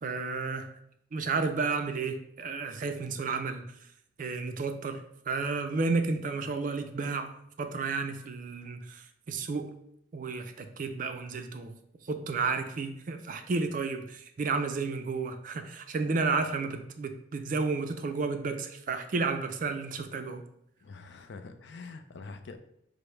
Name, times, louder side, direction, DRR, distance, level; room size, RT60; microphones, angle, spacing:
voice 1, 0.0-0.7 1.1-3.9 4.2-9.7 10.1-11.7 12.0-20.4, right 4 dB, 45° right, 7 dB, 0.4 m, -32 dB
voice 2, 20.8-22.6, left 4 dB, 60° left, 7 dB, 0.4 m, -45 dB
5.0 x 2.0 x 4.4 m, 0.74 s
head